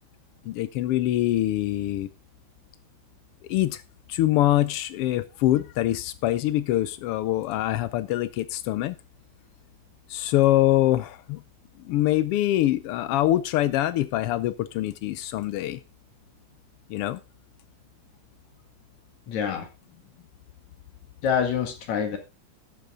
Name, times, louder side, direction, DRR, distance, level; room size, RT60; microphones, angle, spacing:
voice 1, 0.5-2.1 3.5-3.8 4.1-8.9 10.1-11.4 11.9-15.8 16.9-17.2, left 14 dB, 90° left, 1.2 m, -24 dB
voice 2, 19.3-19.7 21.2-22.2, left 7 dB, 70° left, 3.3 m, -26 dB
12.0 x 9.2 x 3.7 m
omnidirectional pair, 3.4 m